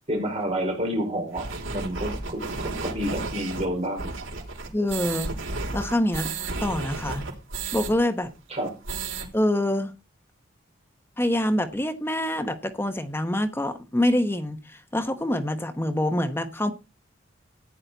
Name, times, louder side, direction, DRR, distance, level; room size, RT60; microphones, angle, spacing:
voice 1, 0.1-4.1 8.5-8.7, equal, 35° right, 5.0 m, -29 dB
sound 1, 1.3-7.9 8.2-8.3 8.6-9.3, right 3 dB, 90° right, 3.6 m, -32 dB
voice 2, 4.7-5.3 5.7-6.3 6.6-7.2 7.7-8.3 9.3-9.9 11.2-16.7, left 1 dB, 10° left, 1.1 m, -25 dB
14.5 x 9.8 x 4.0 m
head